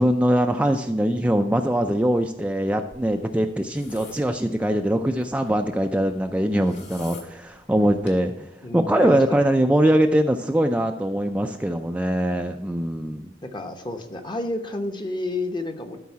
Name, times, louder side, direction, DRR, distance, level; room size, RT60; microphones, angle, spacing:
voice 1, 0.0-8.5 8.7-13.3, right 1 dB, 10° right, 4 dB, 0.4 m, -22 dB
sound 1, 2.9-8.2, left 3 dB, 80° left, 1.8 m, -47 dB
voice 2, 8.6-9.4 13.4-16.0, left 2 dB, 25° left, 6 dB, 0.9 m, -30 dB
12.5 x 4.7 x 4.7 m, 1.0 s
head